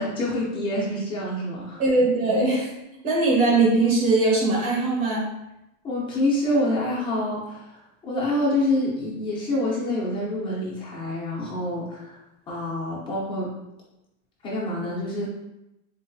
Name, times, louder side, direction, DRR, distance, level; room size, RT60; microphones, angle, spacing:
voice 1, 0.0-1.8 5.8-12.2 12.5-13.5 14.4-15.3, left 1 dB, 10° left, -6 dB, 0.5 m, -27 dB
voice 2, 1.8-2.7 3.0-5.2, right 3 dB, 70° right, -4 dB, 1.5 m, -20 dB
3.8 x 2.5 x 2.6 m, 0.91 s
supercardioid pair, 165°, 46 cm